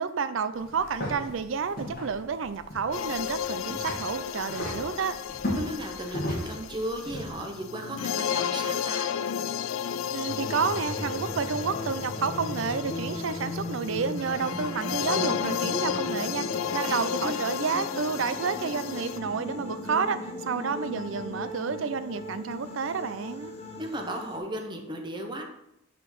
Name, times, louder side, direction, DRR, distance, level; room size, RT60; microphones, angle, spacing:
voice 1, 0.0-5.2 10.1-16.5 16.7-20.2 20.5-23.5, right 5 dB, 70° right, 12 dB, 0.5 m, -30 dB
sound 1, 0.5-7.3, left 1 dB, 50° left, 2.6 m, -36 dB
sound 2, 2.9-19.2, left 8 dB, 85° left, 0.4 m, -33 dB
voice 2, 5.5-9.1 16.8-17.4 23.8-25.4, right 1 dB, 25° right, 3 dB, 1.0 m, -35 dB
sound 3, 10.3-24.4, left 1 dB, 30° left, 1.1 m, -37 dB
5.6 x 5.2 x 6.0 m, 0.83 s
head